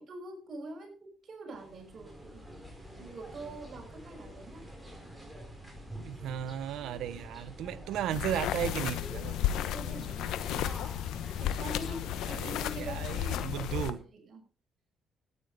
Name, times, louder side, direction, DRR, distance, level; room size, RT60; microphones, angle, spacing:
voice 1, 0.0-2.4 3.0-4.7 9.5-10.7 11.4-14.4, right 2 dB, 50° right, 6.0 m, -45 dB
sound 1, 1.5-13.0, equal, 5° right, 5.4 m, -47 dB
voice 2, 6.0-9.6 12.4-14.0, right 10 dB, 85° right, 1.0 m, -35 dB
sound 2, 8.1-13.9, left 11 dB, 85° left, 1.0 m, -33 dB
13.5 x 9.8 x 5.2 m
cardioid pair, 90°, 0 cm